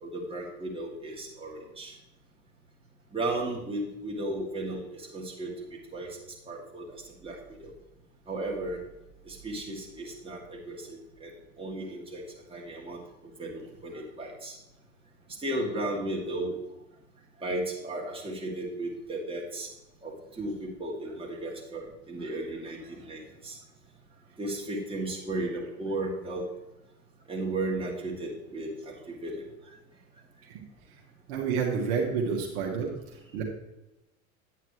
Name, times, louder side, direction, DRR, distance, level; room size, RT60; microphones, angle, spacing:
voice 1, 0.0-1.9 3.1-5.5 5.9-6.2 6.5-6.9 7.2-7.4 7.6-7.7 8.3-8.8 9.3-11.3 11.6-12.2 12.5-13.0 13.4-14.5 15.4-16.6 17.4-19.7 20.0-23.6 24.4-26.4 27.3-29.4, right 2 dB, 15° right, -4 dB, 2.6 m, -35 dB
voice 2, 31.3-32.9 33.3-33.4, right 6 dB, 60° right, -1 dB, 1.8 m, -29 dB
9.2 x 9.1 x 3.2 m, 0.93 s
hypercardioid pair, 100°, 42 cm